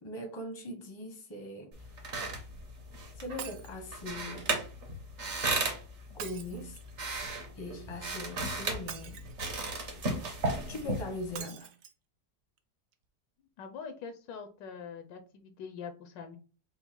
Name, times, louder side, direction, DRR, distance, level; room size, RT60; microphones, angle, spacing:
voice 1, 0.0-1.9 3.1-4.5 6.1-6.8 7.5-9.2 10.6-11.7, left 1 dB, 25° left, 0.6 m, -40 dB
sound 1, 1.7-11.4, right 2 dB, 45° right, 1.2 m, -36 dB
Shatter, 3.4-3.8 6.2-7.1 8.9-9.7 11.4-11.9 12.6-12.7 12.9-13.0, right 8 dB, 65° right, 0.9 m, -44 dB
voice 2, 13.6-16.4, left 6 dB, 80° left, 1.3 m, -43 dB
5.3 x 2.0 x 4.4 m
omnidirectional pair, 1.9 m